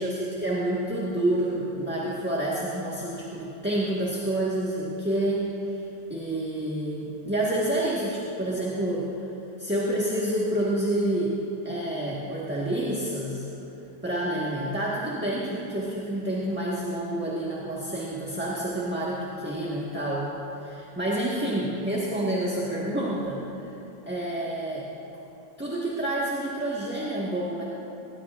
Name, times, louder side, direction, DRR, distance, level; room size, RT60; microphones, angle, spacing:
voice 1, 0.0-5.8 6.1-9.1 9.6-11.4 11.6-13.4 14.0-23.7 24.1-24.9 25.6-27.6, right 1 dB, 5° right, -7 dB, 1.3 m, -28 dB
19.5 x 19.5 x 2.5 m, 3.0 s
omnidirectional pair, 1.9 m